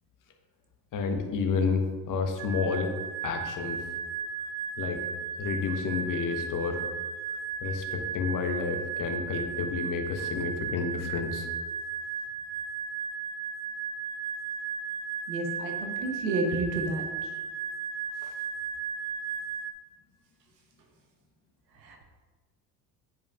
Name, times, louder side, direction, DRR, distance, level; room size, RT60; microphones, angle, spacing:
voice 1, 0.9-3.8 4.8-5.0 5.4-6.9 7.6-11.5 18.2-18.3, left 5 dB, 40° left, 4 dB, 1.1 m, -30 dB
sound 1, 2.4-19.7, right 6 dB, 35° right, 0.6 m, -35 dB
voice 2, 15.3-17.0 21.8-22.0, right 2 dB, 85° right, 3 dB, 1.0 m, -31 dB
9.3 x 5.0 x 2.4 m, 1.3 s
hypercardioid pair, 65°, 49 cm